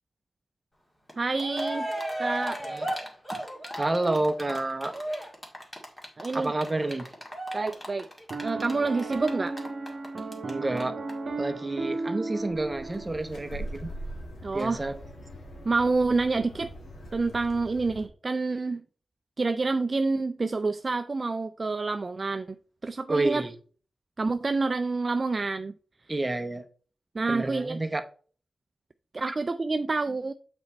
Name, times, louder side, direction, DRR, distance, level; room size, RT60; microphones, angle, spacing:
Cheering, 1.1-1.2 1.4-10.5 10.8-10.9 11.1-11.2, right 1 dB, 15° left, 1.8 m, -35 dB
voice 1, 1.2-1.9 2.2-2.6 6.2-6.5 7.5-8.1 8.4-9.5 14.4-14.8 15.7-16.7 17.1-18.8 19.4-22.5 22.8-23.4 24.2-25.7 27.1-27.8 29.1-30.3, right 3 dB, 35° right, 0.4 m, -28 dB
voice 2, 3.8-4.9 6.3-7.1 10.4-11.0 11.4-13.9 14.5-14.9 23.1-23.5 26.1-26.6 27.3-28.0 29.3-29.4, right 2 dB, 20° right, 0.8 m, -29 dB
Piano, 8.3-13.6, right 3 dB, 50° right, 0.9 m, -35 dB
sound 1, 12.4-18.1, equal, 80° left, 1.9 m, -42 dB
8.1 x 4.4 x 4.1 m
wide cardioid pair, 130°, 0 cm